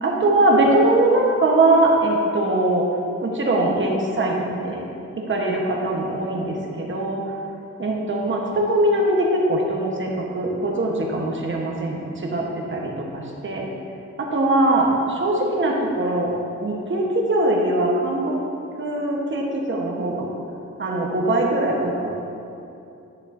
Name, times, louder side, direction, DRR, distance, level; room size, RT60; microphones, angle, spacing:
voice 1, 0.0-2.9 3.2-4.8 5.2-7.3 7.8-13.7 14.2-18.3 18.8-20.3 20.8-22.2, right 2 dB, 40° right, -1 dB, 1.2 m, -21 dB
11.0 x 7.0 x 2.7 m, 2.7 s
wide cardioid pair, 105°, 30 cm